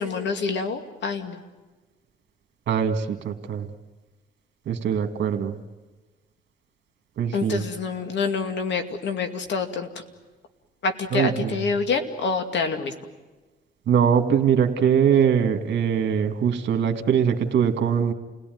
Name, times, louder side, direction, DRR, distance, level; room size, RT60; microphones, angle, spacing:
voice 1, 0.0-1.4 7.3-10.0 10.8-12.9, left 4 dB, 65° left, 6 dB, 2.4 m, -27 dB
voice 2, 2.7-3.7 4.7-5.6 7.2-7.6 11.1-11.6 13.9-18.1, right 8 dB, 65° right, 6 dB, 2.1 m, -22 dB
29.0 x 18.0 x 9.4 m, 1.3 s
cardioid pair, 90°, 20 cm